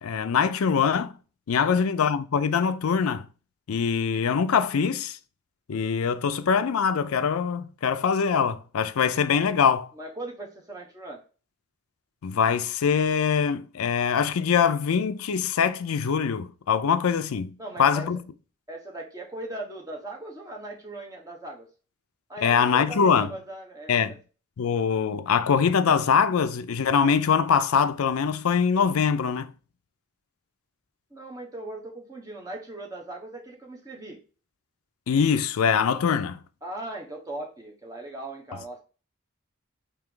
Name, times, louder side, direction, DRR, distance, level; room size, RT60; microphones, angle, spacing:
voice 1, 0.0-1.1 1.5-3.2 3.7-5.2 5.7-9.9 12.2-18.2 22.4-23.3 23.9-24.1 24.6-29.5 35.1-36.4, left 6 dB, 90° left, 0.4 m, -23 dB
voice 2, 9.9-11.2 17.6-18.1 18.7-21.7 22.3-24.2 31.1-34.2 36.6-38.8, right 2 dB, 15° right, 1.0 m, -39 dB
4.5 x 2.9 x 3.6 m
head